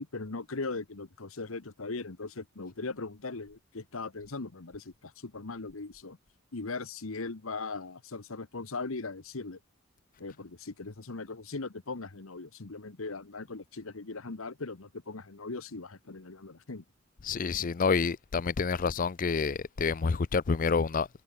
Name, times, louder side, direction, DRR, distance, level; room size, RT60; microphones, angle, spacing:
voice 1, 0.0-6.2 6.5-9.6 10.2-16.8, left 3 dB, 75° left, 1.2 m, -39 dB
voice 2, 17.2-21.1, left 5 dB, 40° left, 0.4 m, -28 dB
head